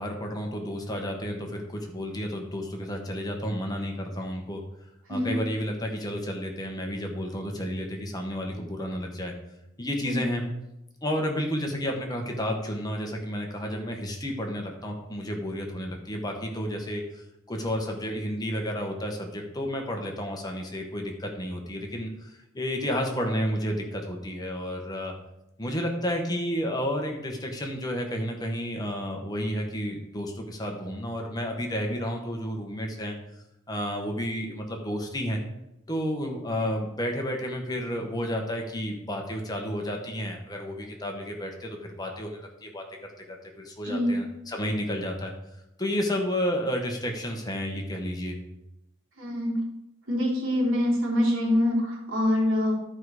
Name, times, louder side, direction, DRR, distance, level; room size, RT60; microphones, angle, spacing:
voice 1, 0.0-4.6 5.1-9.3 9.8-10.4 11.0-25.1 25.6-33.2 33.7-35.4 35.9-42.8 43.6-45.3 45.8-48.3, equal, 20° left, 2 dB, 1.1 m, -31 dB
voice 2, 43.8-44.1 49.2-49.6 50.1-52.7, left 1 dB, 85° right, -4 dB, 3.1 m, -25 dB
11.5 x 4.9 x 4.8 m, 0.88 s
head